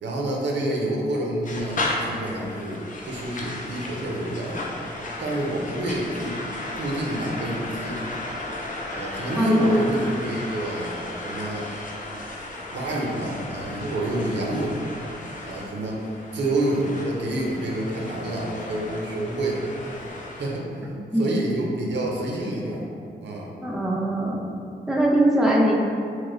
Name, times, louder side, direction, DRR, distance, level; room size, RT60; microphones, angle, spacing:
voice 1, 0.0-4.6 5.2-6.4 6.8-8.0 8.9-11.7 12.7-14.8 15.4-16.1 16.3-19.8 20.4-20.8 21.1-22.9 23.2-23.5, right 1 dB, 75° right, -2 dB, 0.6 m, -28 dB
sound 1, 1.4-20.6, left 2 dB, 45° left, 0.6 m, -35 dB
voice 2, 9.4-9.7 21.1-21.4 23.6-24.4 24.9-25.7, right 1 dB, 5° right, -3 dB, 0.5 m, -21 dB
3.0 x 2.0 x 3.7 m, 2.4 s
cardioid pair, 55°, 18 cm